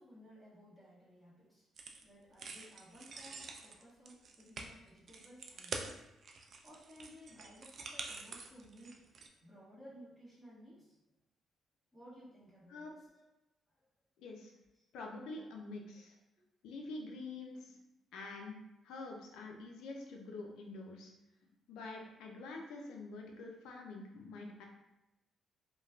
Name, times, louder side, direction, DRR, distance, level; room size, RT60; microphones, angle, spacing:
voice 1, 0.0-1.7 2.0-6.0 6.6-10.9 11.9-13.3 13.8-13.9 14.8-14.9 15.3-15.5 15.9-16.0, equal, 5° left, -11 dB, 1.3 m, -57 dB
sound 1, 1.8-2.0 2.4-9.3, right 4 dB, 55° right, 0.3 m, -46 dB
voice 2, 14.2-14.5 14.9-16.1 16.6-17.8 18.1-18.6 18.8-21.1 21.4-24.7, left 3 dB, 90° left, 1 dB, 0.5 m, -46 dB
3.1 x 2.2 x 2.4 m, 0.92 s
cardioid pair, 90°, 0 cm